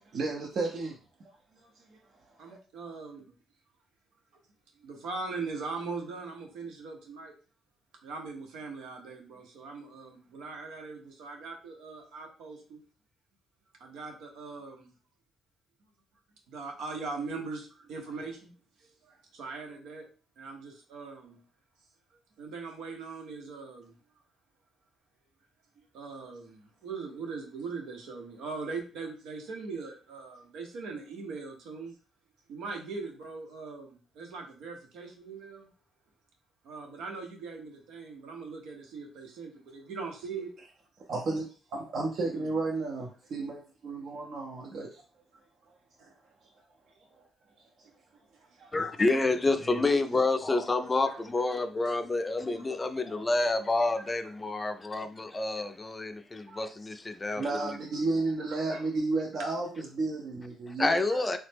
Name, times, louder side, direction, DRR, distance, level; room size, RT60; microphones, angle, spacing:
voice 1, 0.1-1.0 1.8-2.0 2.4-2.6 41.1-41.5 41.7-45.0 48.6-48.9 49.6-49.8 50.1-50.2 57.4-61.0, right 3 dB, 60° right, 0 dB, 0.6 m, -33 dB
voice 2, 2.4-3.3 4.8-7.3 8.0-12.8 13.8-14.9 16.5-18.5 18.8-20.0 20.4-21.4 22.4-23.9 25.8-32.0 32.5-35.7 36.6-40.5 42.2-42.5 46.0-46.1 48.6-48.7 50.8-51.3 51.8-52.0 52.5-52.8 53.1-53.2 53.6-53.7 53.9-54.3 55.5-55.7 56.5-56.6 58.7-58.8, right 4 dB, 85° right, 2 dB, 0.8 m, -41 dB
voice 3, 48.7-57.5 60.8-61.4, left 2 dB, 25° left, 8 dB, 0.4 m, -28 dB
3.1 x 2.0 x 3.3 m, 0.37 s
cardioid pair, 90°, 0 cm